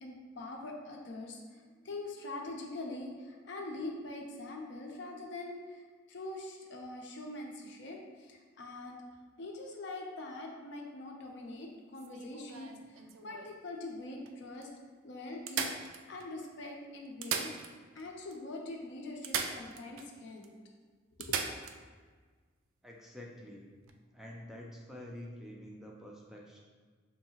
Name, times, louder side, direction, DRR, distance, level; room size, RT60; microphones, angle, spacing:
voice 1, 0.0-9.0 9.4-14.7 15.0-15.7 16.1-17.5 17.9-20.5 21.2-21.4, left 2 dB, 60° left, 1 dB, 0.6 m, -43 dB
sound 1, 12.0-13.6 14.3-14.4 14.6-14.7 15.5-16.5 17.1-18.1 18.3-18.4 19.2-20.1 20.4-20.5 21.2-21.8 23.8-23.9, right 6 dB, 85° right, 0.3 m, -38 dB
voice 2, 22.8-23.7 24.1-26.6, left 1 dB, ahead, -2 dB, 0.3 m, -47 dB
4.4 x 2.8 x 2.8 m, 1.5 s
head